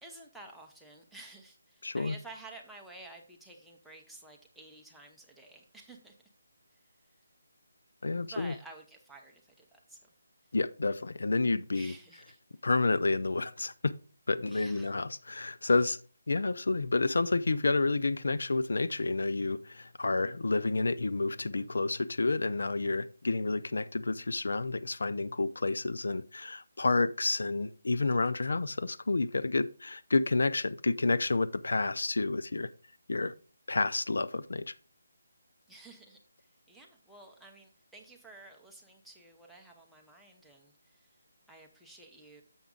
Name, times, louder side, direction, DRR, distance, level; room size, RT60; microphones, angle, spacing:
voice 1, 0.0-6.2 6.7-6.8 8.2-10.0 11.7-12.4 14.5-14.9 35.7-41.2 41.5-42.4, right 2 dB, ahead, 0.7 m, -52 dB
voice 2, 1.8-2.1 8.0-8.5 10.5-11.9 12.6-13.9 14.3-16.0 16.3-32.7 33.1-33.3 33.7-34.7, left 3 dB, 75° left, 0.4 m, -29 dB
7.1 x 6.0 x 3.8 m
hypercardioid pair, 170°, 0 cm